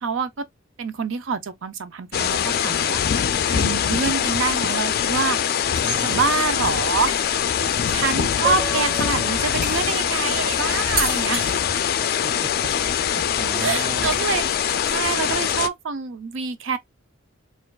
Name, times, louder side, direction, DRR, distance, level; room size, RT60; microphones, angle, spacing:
voice 1, 0.0-0.3 0.8-5.6 6.0-7.1 7.9-11.6 13.4-16.8, right 5 dB, 70° right, 0.5 m, -26 dB
sound 1, 2.1-15.7, left 8 dB, 50° left, 0.3 m, -23 dB
sound 2, 5.6-15.5, right 2 dB, 50° right, 2.0 m, -36 dB
voice 2, 5.8-6.2 12.0-12.5 12.9-14.2, right 2 dB, 15° right, 0.4 m, -35 dB
Piano, 8.4-10.4, right 2 dB, 10° left, 1.0 m, -33 dB
4.3 x 2.4 x 2.3 m
head